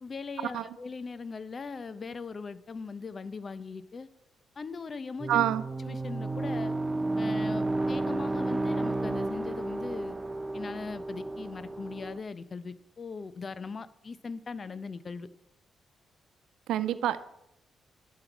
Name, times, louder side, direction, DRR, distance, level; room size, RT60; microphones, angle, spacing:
voice 1, 0.0-4.1 4.6-5.5 5.8-6.8 7.2-10.2 10.5-15.3, left 4 dB, 45° left, 15 dB, 0.8 m, -39 dB
sound 1, 5.2-12.2, right 2 dB, 25° right, 0.8 m, -32 dB
voice 2, 5.3-5.6 16.7-17.2, right 11 dB, 75° right, 13 dB, 0.4 m, -26 dB
11.5 x 7.7 x 4.6 m, 0.82 s
hypercardioid pair, 45°, 0 cm